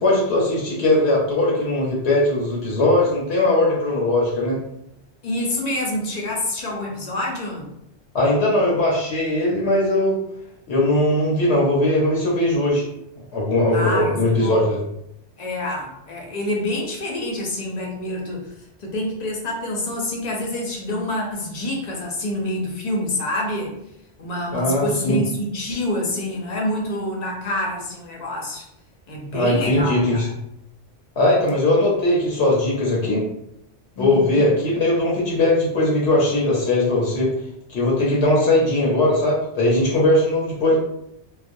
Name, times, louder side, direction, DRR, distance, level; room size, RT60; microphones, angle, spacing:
voice 1, 0.0-4.6 8.1-10.2 10.7-12.9 13.3-14.8 24.5-25.2 29.3-30.3 31.2-33.2 34.0-37.3 37.7-40.8, left 1 dB, 70° left, -3 dB, 0.8 m, -19 dB
voice 2, 5.2-7.7 13.7-14.7 15.4-18.5 18.8-23.7 24.2-28.6 29.1-30.3 34.0-34.5, left 1 dB, 50° left, -2 dB, 0.5 m, -27 dB
2.4 x 2.0 x 2.5 m, 0.80 s
omnidirectional pair, 1.2 m